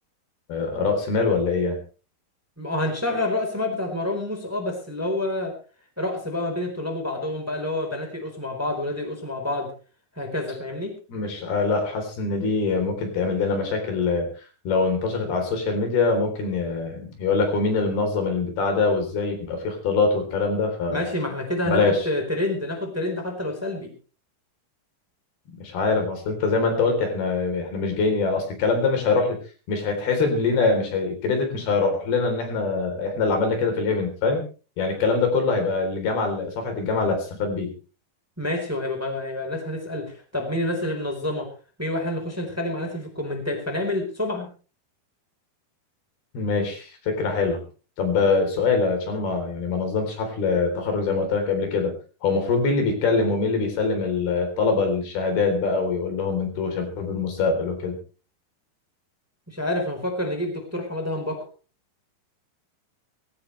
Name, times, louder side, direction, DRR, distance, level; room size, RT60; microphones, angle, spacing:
voice 1, 0.5-1.8 11.1-14.3 14.7-21.0 21.7-22.1 25.6-29.4 29.7-34.4 34.8-37.8 46.3-47.6 48.0-58.0, left 4 dB, 75° left, 5 dB, 5.7 m, -24 dB
voice 2, 2.6-5.5 6.0-9.7 10.2-10.9 20.9-23.9 38.4-41.5 41.8-44.5 59.5-61.4, left 1 dB, 5° right, 3 dB, 3.7 m, -28 dB
19.5 x 16.5 x 3.3 m, 0.36 s
omnidirectional pair, 4.5 m